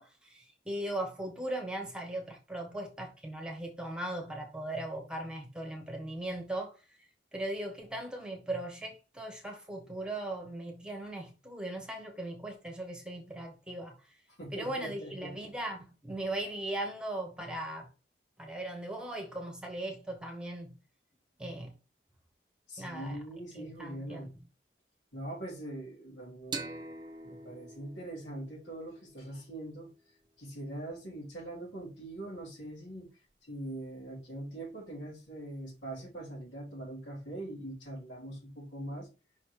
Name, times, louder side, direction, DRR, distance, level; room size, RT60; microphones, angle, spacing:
voice 1, 0.0-6.8 7.3-13.9 14.5-17.9 18.4-20.8 21.4-21.7 22.8-23.2 23.5-24.3, right 1 dB, 5° right, 1.3 m, -38 dB
voice 2, 14.3-15.5 22.7-24.3 25.1-26.9 27.2-29.9 30.4-33.1 33.4-39.1, right 1 dB, 90° left, 3.9 m, -42 dB
sound 1, 26.5-29.9, right 3 dB, 25° right, 1.0 m, -44 dB
5.6 x 4.0 x 4.8 m
head